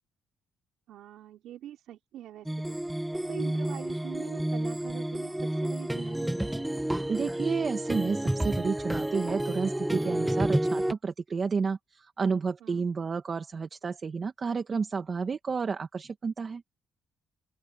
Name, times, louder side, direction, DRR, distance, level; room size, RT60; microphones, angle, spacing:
voice 1, 0.9-3.0 3.3-7.0 12.6-12.8, right 12 dB, 80° right, 4.2 m, -45 dB
sound 1, 2.5-10.9, right 1 dB, 5° right, 1.8 m, -30 dB
voice 2, 7.1-16.6, right 5 dB, 40° right, 2.0 m, -31 dB
open air
cardioid pair, 90°, 0 cm